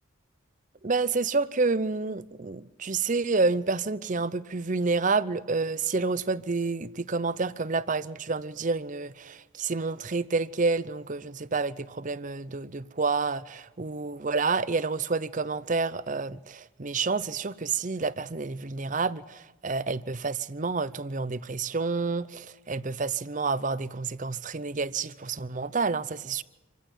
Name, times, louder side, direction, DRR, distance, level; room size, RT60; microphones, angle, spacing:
voice 1, 0.8-26.4, right 4 dB, 40° right, 0.7 m, -29 dB
27.0 x 16.0 x 9.3 m
head